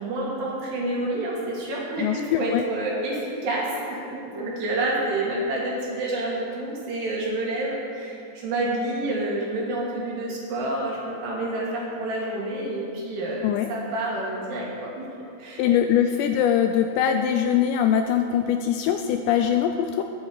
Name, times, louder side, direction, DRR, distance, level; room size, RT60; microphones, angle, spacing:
voice 1, 0.0-15.1 15.4-15.7, right 2 dB, 65° right, -4 dB, 4.7 m, -28 dB
voice 2, 2.0-2.6 13.4-13.7 15.6-20.0, left 9 dB, 85° left, 6 dB, 2.6 m, -22 dB
21.5 x 9.6 x 4.9 m, 2.5 s
omnidirectional pair, 5.5 m